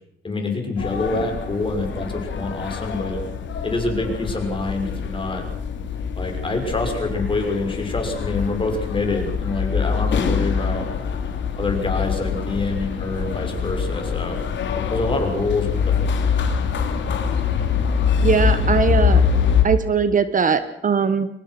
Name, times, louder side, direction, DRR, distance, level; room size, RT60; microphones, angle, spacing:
voice 1, 0.2-3.2 3.6-5.4 6.2-10.9 11.6-14.4 14.9-16.3, left 2 dB, 25° left, 3 dB, 6.1 m, -26 dB
sound 1, 0.8-19.6, left 6 dB, 65° left, 3.2 m, -24 dB
voice 2, 18.2-19.2 19.6-21.3, right 6 dB, 40° right, 12 dB, 1.3 m, -20 dB
23.5 x 19.5 x 6.1 m, 0.81 s
cardioid pair, 90°, 20 cm